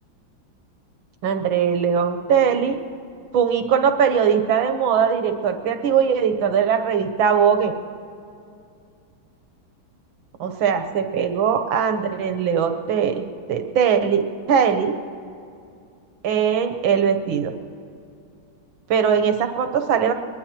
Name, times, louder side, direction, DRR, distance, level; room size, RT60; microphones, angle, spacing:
voice 1, 1.2-2.8 3.3-7.7 10.4-13.2 13.5-14.9 16.2-17.5 18.9-20.1, right 7 dB, 85° right, 6 dB, 1.8 m, -20 dB
22.0 x 20.0 x 3.0 m, 2.4 s
omnidirectional pair, 2.1 m